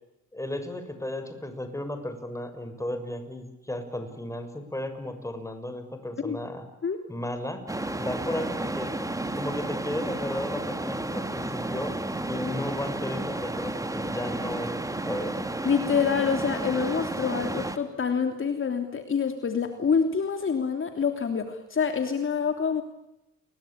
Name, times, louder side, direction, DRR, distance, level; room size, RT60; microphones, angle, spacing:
voice 1, 0.3-6.6 7.1-7.6 8.0-8.9 9.3-12.0 12.3-15.4, left 1 dB, 10° left, 8 dB, 6.6 m, -34 dB
sound 1, 7.7-17.8, right 2 dB, 10° right, 2.7 m, -32 dB
voice 2, 15.6-22.8, left 6 dB, 40° left, 6 dB, 3.1 m, -26 dB
29.0 x 23.0 x 8.7 m, 0.90 s
cardioid pair, 90°, 30 cm